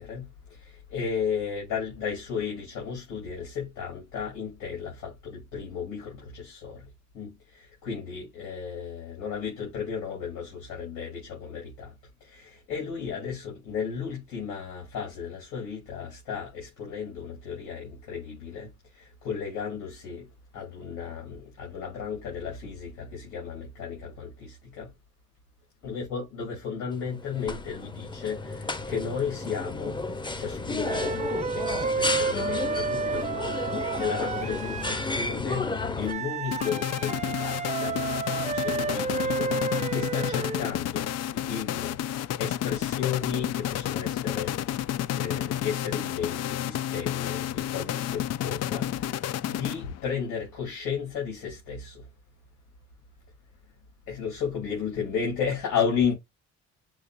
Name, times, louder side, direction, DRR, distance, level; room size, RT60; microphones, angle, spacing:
voice 1, 0.0-6.9 7.1-11.9 12.2-20.3 20.5-24.9 25.8-44.6 45.1-52.1 54.1-56.1, left 6 dB, 85° left, 3.1 m, -34 dB
sound 1, 26.9-36.1, left 3 dB, 15° left, 0.7 m, -32 dB
sound 2, 30.8-35.1 36.0-40.7, right 4 dB, 25° right, 0.6 m, -31 dB
sound 3, 36.5-50.1, left 12 dB, 60° left, 0.4 m, -31 dB
6.4 x 2.8 x 2.6 m
cardioid pair, 90°, 30 cm